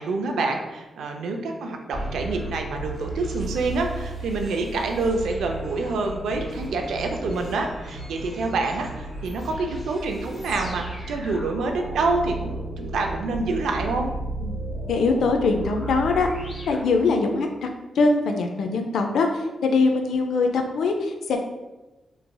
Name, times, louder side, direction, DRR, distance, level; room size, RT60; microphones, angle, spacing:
voice 1, 0.0-14.1, right 3 dB, 85° right, 3 dB, 0.4 m, -27 dB
sound 1, 1.9-17.5, right 2 dB, 50° left, 1.3 m, -34 dB
voice 2, 14.9-16.3 16.7-17.7 18.0-21.4, left 3 dB, 85° left, 4 dB, 0.3 m, -22 dB
3.0 x 2.5 x 2.2 m, 1.1 s
cardioid pair, 60°, 0 cm